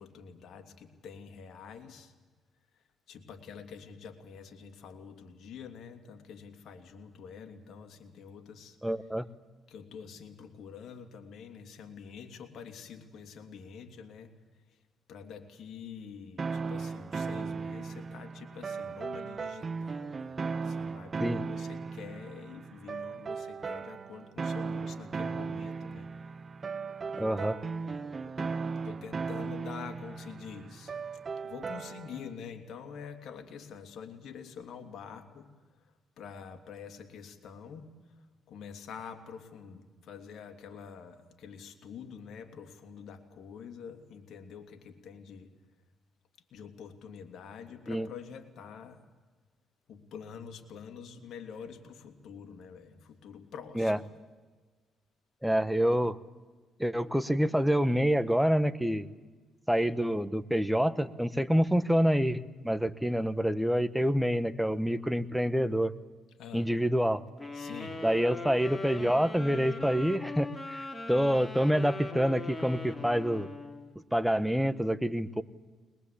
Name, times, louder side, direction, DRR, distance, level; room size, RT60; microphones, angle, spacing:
voice 1, 0.0-2.1 3.1-8.8 9.7-14.3 15.1-20.4 20.6-26.1 27.1-28.5 28.8-30.9 31.4-35.5 36.2-37.9 38.5-45.5 46.5-49.0 49.9-54.1 66.4-66.7 67.5-68.0, left 6 dB, 70° left, 5 dB, 2.8 m, -46 dB
voice 2, 8.8-9.2 21.2-21.4 27.2-27.6 47.9-48.1 53.7-54.0 55.4-56.2 56.8-59.1 59.7-65.9 66.5-67.2 68.0-73.5 74.1-75.4, equal, 5° right, 13 dB, 1.0 m, -27 dB
sound 1, 16.4-32.3, right 4 dB, 35° right, 0.7 m, -37 dB
sound 2, 67.4-73.9, left 2 dB, 20° left, 2.8 m, -40 dB
21.5 x 21.0 x 8.5 m, 1.4 s
cardioid pair, 90°, 0 cm